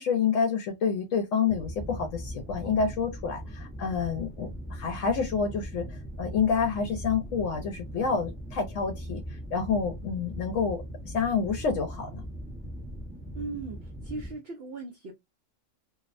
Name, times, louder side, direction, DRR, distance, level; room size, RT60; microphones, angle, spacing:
voice 1, 0.0-9.2 9.5-10.8 11.1-12.2, left 6 dB, 80° left, 0.9 m, -28 dB
sound 1, 1.5-14.3, equal, 10° right, 0.5 m, -40 dB
voice 2, 13.3-13.8 14.0-15.1, right 3 dB, 60° right, 0.7 m, -37 dB
2.6 x 2.0 x 2.4 m
omnidirectional pair, 1.3 m